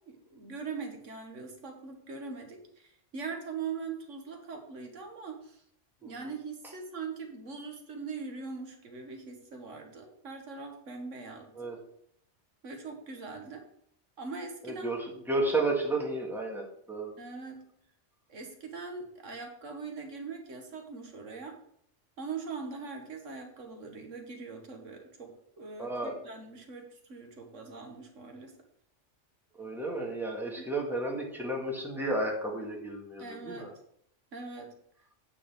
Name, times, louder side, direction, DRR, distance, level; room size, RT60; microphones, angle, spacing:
voice 1, 0.1-5.6 6.0-11.7 12.6-13.6 14.2-15.0 17.2-17.6 18.3-21.6 22.2-28.5 30.6-30.7 33.2-33.7 34.3-34.7, right 4 dB, 90° right, 3 dB, 1.8 m, -41 dB
voice 2, 14.6-17.1 25.8-26.2 29.5-33.7, right 2 dB, ahead, -1 dB, 1.9 m, -32 dB
8.9 x 4.3 x 7.1 m, 0.68 s
omnidirectional pair, 1.2 m